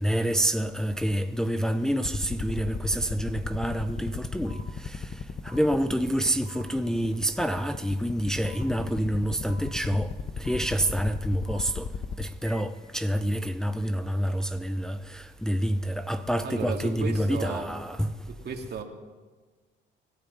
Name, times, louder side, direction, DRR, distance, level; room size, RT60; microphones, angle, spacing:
voice 1, 0.0-4.6 4.8-5.0 5.4-10.1 10.4-11.9 12.2-18.1, equal, 5° left, 0.7 m, -27 dB
sound 1, 2.0-12.2, left 6 dB, 45° left, 1.0 m, -33 dB
sound 2, 4.4-4.6 5.4-5.6 6.4-6.6 7.4-7.6 8.4-8.6 9.4-9.6 10.4-10.6 11.4-11.6 12.4-12.6, equal, 20° left, 5.7 m, -48 dB
voice 2, 16.4-17.7 18.4-18.8, right 5 dB, 55° right, 2.4 m, -34 dB
25.0 x 12.5 x 4.1 m
cardioid pair, 90°, 20 cm